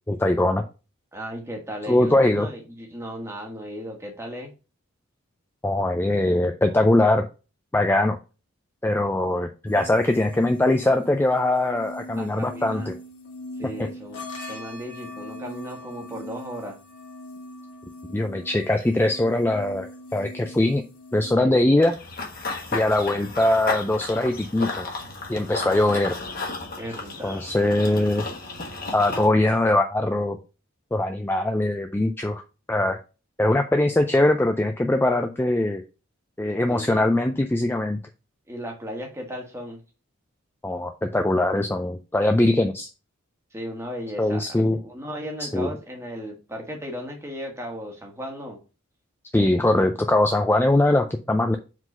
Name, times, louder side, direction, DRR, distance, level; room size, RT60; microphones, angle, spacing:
voice 1, 0.1-0.6 1.9-2.5 5.6-7.3 7.7-8.2 8.8-12.9 18.1-20.8 21.1-21.9 22.7-24.8 25.3-26.1 27.2-28.3 28.9-30.4 30.9-32.4 32.7-33.0 33.4-35.8 36.4-38.0 40.6-42.9 44.2-44.8 45.4-45.7 49.3-51.6, left 1 dB, 10° left, 6 dB, 0.3 m, -21 dB
voice 2, 1.1-4.5 12.2-13.0 13.6-16.8 21.4-21.7 25.6-25.8 26.8-27.5 36.7-37.0 38.5-39.8 43.5-48.6, equal, 10° right, 1 dB, 1.3 m, -36 dB
sound 1, 9.7-21.3, left 1 dB, 80° left, 2.1 m, -41 dB
Run / Bird vocalization bird call bird song, 21.8-29.3, left 3 dB, 40° left, 1.4 m, -33 dB
4.9 x 3.9 x 5.3 m, 0.33 s
head